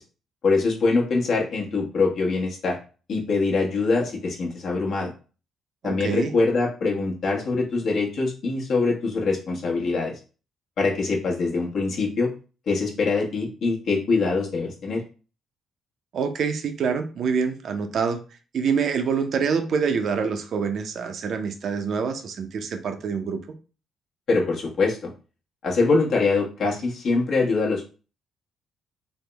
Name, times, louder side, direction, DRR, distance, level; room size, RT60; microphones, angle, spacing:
voice 1, 0.4-2.8 3.1-5.1 5.8-10.1 10.8-12.3 12.7-15.0 24.3-25.1 25.6-27.9, left 3 dB, 60° left, -2 dB, 1.0 m, -23 dB
voice 2, 5.8-6.3 16.1-18.2 18.5-23.4, right 6 dB, 60° right, 7 dB, 0.5 m, -26 dB
3.4 x 2.0 x 3.3 m, 0.36 s
cardioid pair, 90°, 0 cm